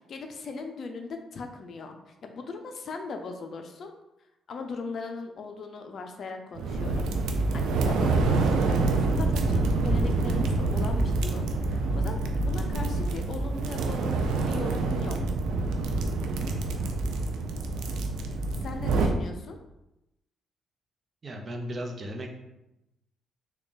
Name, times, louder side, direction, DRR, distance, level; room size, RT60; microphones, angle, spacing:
voice 1, 0.1-3.9 4.5-7.1 7.5-15.2 18.6-19.6, left 4 dB, 55° left, 5 dB, 0.5 m, -39 dB
sound 1, 6.6-19.1, right 3 dB, 85° right, 0.4 m, -26 dB
voice 2, 21.2-22.4, equal, 40° right, 1 dB, 0.7 m, -36 dB
3.5 x 2.3 x 3.8 m, 0.91 s
cardioid pair, 90°, 0 cm